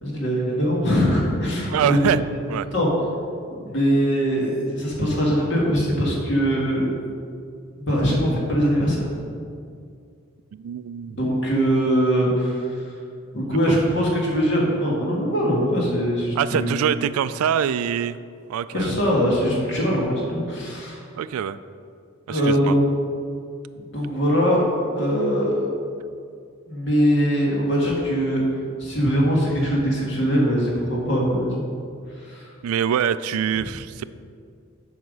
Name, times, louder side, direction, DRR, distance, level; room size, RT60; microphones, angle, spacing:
voice 1, 0.0-2.0 2.7-2.9 3.6-6.9 7.8-9.1 11.2-12.7 13.3-16.8 18.7-21.0 22.3-22.8 23.9-24.6 24.9-25.7 26.7-28.4 28.8-31.6 32.3-32.5, equal, 55° left, -3 dB, 1.9 m, -22 dB
voice 2, 1.7-2.2 2.5-2.7 10.5-11.2 13.7-13.8 16.4-18.2 18.5-18.9 21.2-21.6 22.3-22.8 32.6-34.0, right 8 dB, 85° right, 15 dB, 0.3 m, -24 dB
7.8 x 5.7 x 5.3 m, 2.3 s
head